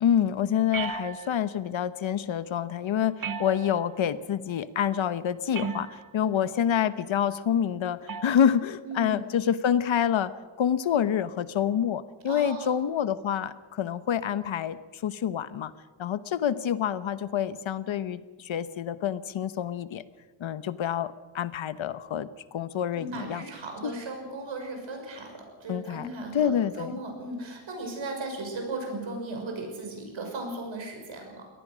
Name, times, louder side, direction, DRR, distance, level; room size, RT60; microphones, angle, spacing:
voice 1, 0.0-10.3 10.6-15.7 16.0-20.0 20.4-23.4 23.8-23.9 25.7-27.0, left 9 dB, 80° left, 14 dB, 1.0 m, -27 dB
sound 1, 0.7-1.6 3.2-4.0 5.5-6.2 8.1-8.5, right 6 dB, 45° right, 1.1 m, -35 dB
voice 2, 8.8-9.2 12.3-12.7 22.9-31.5, right 2 dB, 75° right, 3 dB, 6.1 m, -36 dB
23.5 x 18.5 x 6.2 m, 1.4 s
wide cardioid pair, 155°, 46 cm